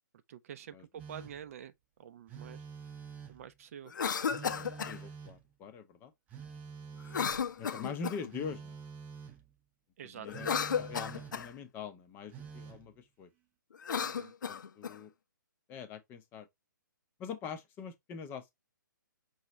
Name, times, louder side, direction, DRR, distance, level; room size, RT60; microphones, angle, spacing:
voice 1, 0.3-1.7 2.0-2.6 3.3-3.9 10.0-10.6 14.0-14.3, right 9 dB, 45° right, 0.5 m, -48 dB
Telephone, 1.0-1.5 2.3-3.5 4.3-5.5 6.3-7.5 8.3-9.4 10.3-11.5 12.3-12.9, right 6 dB, 15° right, 0.8 m, -47 dB
Cough, 3.9-5.0 7.1-8.3 10.2-11.5 13.7-15.0, left 7 dB, 65° left, 0.7 m, -34 dB
voice 2, 4.5-6.1 7.1-7.3 7.6-8.8 10.0-10.5 10.8-13.3 14.5-15.1 15.7-16.5 17.2-18.5, left 6 dB, 20° left, 0.7 m, -43 dB
5.5 x 2.9 x 3.0 m
figure-of-eight pair, 135°, 11 cm